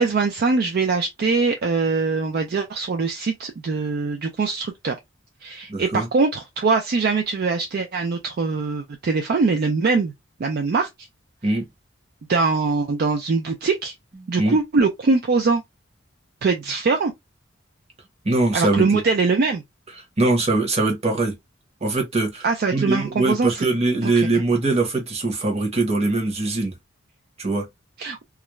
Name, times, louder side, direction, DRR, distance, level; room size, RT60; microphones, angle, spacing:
voice 1, 0.0-5.0 5.4-10.1 10.4-10.9 12.3-13.9 14.3-15.6 16.4-17.1 18.5-19.6 22.4-23.7 24.0-24.4 28.0-28.2, right 4 dB, 50° right, 0.4 m, -22 dB
voice 2, 5.7-6.1 11.4-11.6 14.4-14.6 18.2-19.0 20.2-21.3 21.8-22.4 22.7-26.7 27.4-27.7, right 2 dB, 30° right, 0.9 m, -22 dB
2.4 x 2.1 x 2.9 m
head